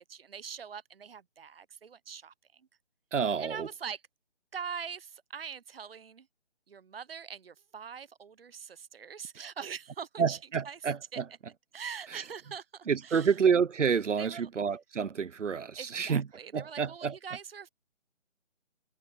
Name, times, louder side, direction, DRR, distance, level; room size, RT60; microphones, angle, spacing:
voice 1, 0.0-2.7 3.4-4.0 4.5-6.3 6.7-10.4 10.6-10.8 11.1-11.2 11.7-13.3 14.2-14.5 15.8-17.7, right 7 dB, 55° right, 0.8 m, -43 dB
voice 2, 3.1-3.7 10.2-11.2 12.9-16.2 16.5-17.1, right 6 dB, 85° right, 0.8 m, -28 dB
figure-of-eight pair, 170°, 36 cm